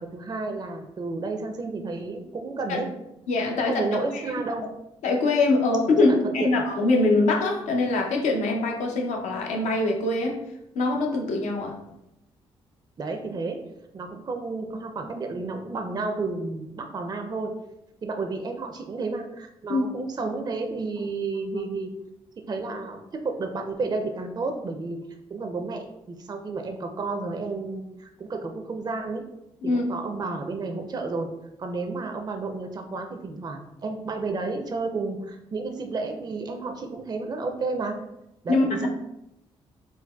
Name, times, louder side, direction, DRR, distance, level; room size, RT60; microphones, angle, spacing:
voice 1, 0.1-2.9 3.7-4.7 6.0-6.5 13.0-13.6 13.9-17.5 18.0-21.9 22.5-25.0 25.3-29.2 29.6-31.3 31.6-37.9 38.4-38.9, right 3 dB, 35° right, 4 dB, 0.4 m, -31 dB
voice 2, 3.3-3.9 4.1-4.3 5.0-10.4 10.7-11.8 19.7-19.9 29.6-29.8 38.5-38.9, left 2 dB, 80° left, 1 dB, 0.6 m, -23 dB
3.9 x 2.1 x 2.2 m, 0.86 s
supercardioid pair, 50°, 12 cm